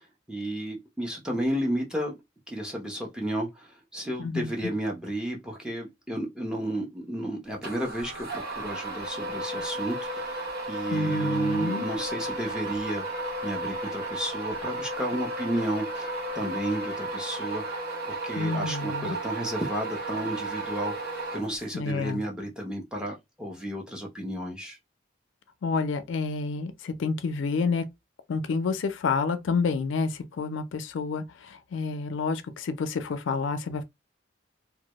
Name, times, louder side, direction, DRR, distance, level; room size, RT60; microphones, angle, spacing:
voice 1, 0.0-2.1 2.5-13.0 13.4-24.8, right 1 dB, 5° right, 0.5 m, -32 dB
voice 2, 4.2-4.5 10.9-11.8 18.4-19.2 21.7-22.2 25.6-27.9 28.3-33.8, left 4 dB, 75° left, 0.4 m, -29 dB
sound 1, 7.6-21.9, right 2 dB, 50° right, 0.7 m, -34 dB
2.1 x 2.0 x 2.9 m
head